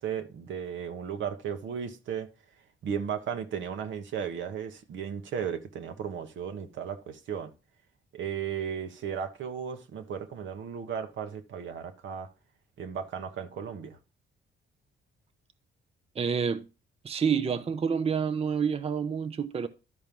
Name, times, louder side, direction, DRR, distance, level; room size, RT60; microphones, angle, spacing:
voice 1, 0.0-2.3 2.8-7.5 8.1-12.3 12.8-14.0, right 7 dB, 70° right, 1.3 m, -35 dB
voice 2, 16.2-16.7 17.0-19.7, right 6 dB, 30° right, 0.6 m, -28 dB
12.0 x 4.4 x 5.3 m
cardioid pair, 90°, 20 cm